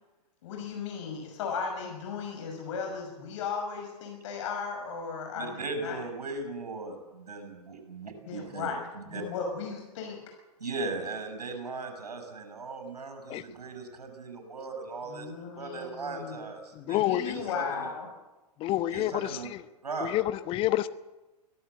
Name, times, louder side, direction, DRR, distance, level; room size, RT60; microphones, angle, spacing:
voice 1, 0.4-6.0 8.3-10.2 15.0-16.4 16.8-18.1, left 5 dB, 50° left, 6.1 m, -36 dB
voice 2, 5.3-9.2 10.6-17.9 18.9-19.5 19.8-20.1, right 3 dB, 70° right, 6.5 m, -38 dB
voice 3, 16.7-17.4 18.6-19.6 20.0-20.9, left 14 dB, 25° left, 1.0 m, -28 dB
23.5 x 17.5 x 7.9 m
figure-of-eight pair, 105°, 21 cm